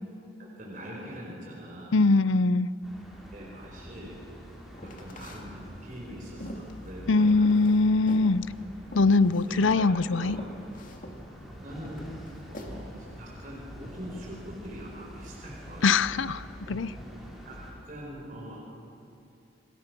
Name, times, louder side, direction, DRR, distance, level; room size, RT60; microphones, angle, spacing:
voice 1, 0.4-2.0 3.3-4.2 4.8-7.7 9.2-10.3 11.6-12.0 12.5-15.9 16.6-16.8 17.4-18.6, equal, 45° right, -3 dB, 4.7 m, -43 dB
voice 2, 1.9-2.7 7.1-8.4 8.9-10.4 15.8-16.9, left 3 dB, 80° left, 17 dB, 0.6 m, -22 dB
sound 1, 2.8-17.7, equal, ahead, 4.9 m, -46 dB
sound 2, 4.7-5.5 5.9-8.3 8.9-9.5 9.9-10.0 10.3-11.2 11.8-12.7, left 1 dB, 45° left, 2.3 m, -44 dB
27.0 x 20.0 x 6.1 m, 2.8 s
head